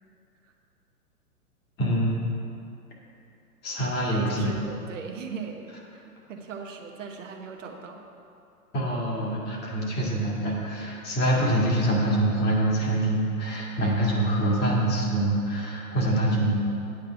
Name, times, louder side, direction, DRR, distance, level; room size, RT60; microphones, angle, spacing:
voice 1, 1.8-2.1 3.6-4.5 8.7-16.6, right 1 dB, 20° left, -4 dB, 2.0 m, -25 dB
voice 2, 4.1-8.0, right 5 dB, 55° right, 2 dB, 1.0 m, -38 dB
9.3 x 5.0 x 7.9 m, 2.6 s
figure-of-eight pair, 115°, 46 cm